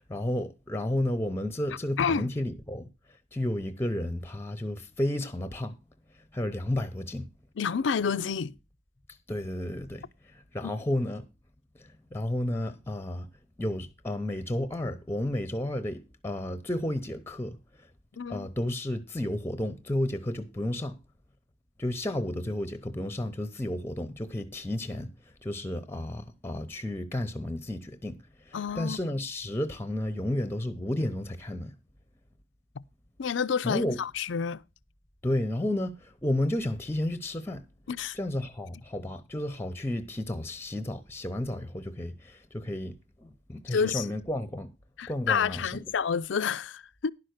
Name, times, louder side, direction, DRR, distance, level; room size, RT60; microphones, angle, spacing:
voice 1, 0.0-2.9 3.3-5.8 6.3-7.3 9.3-10.0 10.5-11.3 11.8-13.3 13.6-17.6 18.3-21.0 21.8-25.1 25.4-28.2 28.5-31.7 33.6-34.0 35.2-37.6 38.1-42.9 43.2-44.7 45.1-45.9, left 1 dB, 10° left, 0.7 m, -32 dB
voice 2, 2.0-2.3 7.6-8.5 10.6-10.7 18.2-18.5 28.5-29.0 33.2-34.6 37.9-38.2 43.7-44.1 45.0-47.1, left 6 dB, 65° left, 0.4 m, -29 dB
11.0 x 5.7 x 6.4 m
head